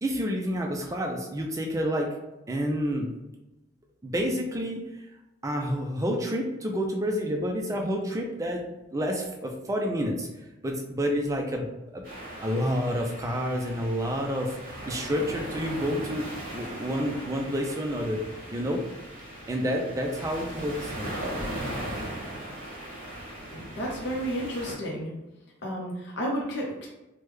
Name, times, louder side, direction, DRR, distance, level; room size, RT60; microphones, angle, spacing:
voice 1, 0.0-2.1 2.5-3.1 4.0-4.8 5.4-8.6 8.9-10.3 10.6-11.7 11.9-12.0 12.4-18.2 18.5-18.8 19.5-21.2, equal, 15° right, 1 dB, 0.3 m, -29 dB
sound 1, 12.0-24.7, right 1 dB, 40° right, 1.1 m, -38 dB
voice 2, 23.5-25.1 25.6-26.9, equal, 60° left, -3 dB, 0.6 m, -32 dB
3.3 x 2.1 x 3.2 m, 1.0 s
head